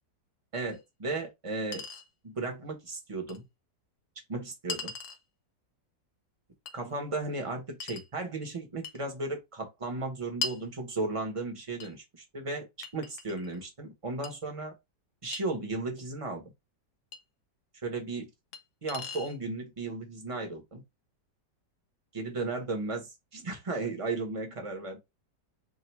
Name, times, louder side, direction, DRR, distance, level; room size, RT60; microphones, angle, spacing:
voice 1, 0.5-1.8 2.2-3.4 4.3-4.9 6.7-12.7 12.9-14.7 15.2-16.5 17.8-18.3 18.8-20.8 22.1-23.1 23.3-25.0, right 3 dB, 20° right, 1.0 m, -35 dB
Chink clink, 0.7-0.8 1.7-2.1 3.3-3.4 4.7-5.2 6.7-6.8 7.8-8.1 8.8-9.0 10.4-10.6 11.8-11.9 12.8-13.6 14.2-14.3 15.3-15.4 17.1-17.2 18.5-18.6 18.9-19.4, left 5 dB, 60° left, 0.9 m, -38 dB
3.8 x 2.5 x 4.5 m
omnidirectional pair, 1.9 m